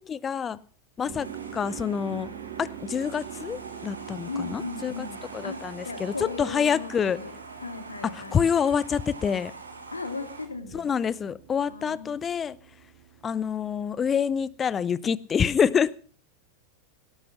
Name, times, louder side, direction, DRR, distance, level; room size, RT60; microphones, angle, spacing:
voice 1, 0.1-0.6 1.0-1.3 1.5-2.3 2.6-5.1 5.3-7.2 8.3-9.5 10.7-12.6 13.2-15.9, left 7 dB, 20° left, 21 dB, 0.6 m, -27 dB
sound 1, 1.0-14.6, right 11 dB, 50° right, 2.3 m, -45 dB
sound 2, 1.2-10.5, right 3 dB, 80° right, 3.0 m, -44 dB
voice 2, 4.3-7.3 7.6-8.4 9.9-10.9 11.7-12.2, left 3 dB, 80° left, 9 dB, 2.4 m, -37 dB
18.5 x 11.5 x 5.8 m, 0.40 s
figure-of-eight pair, 90°, 0 cm